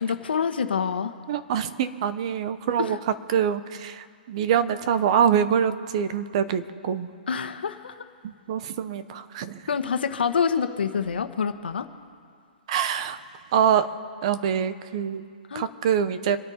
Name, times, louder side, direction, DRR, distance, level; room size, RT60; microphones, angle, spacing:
voice 1, 0.0-1.1 2.8-3.0 7.3-7.9 9.7-11.9 15.5-15.7, left 6 dB, 85° left, 8 dB, 1.3 m, -26 dB
voice 2, 1.3-3.0 3.3-7.1 8.2-9.6 12.7-13.2 13.5-13.9 14.2-15.2 15.5-16.4, right 8 dB, 40° right, 12 dB, 0.9 m, -25 dB
26.0 x 9.3 x 4.3 m, 2.1 s
hypercardioid pair, 160°, 5 cm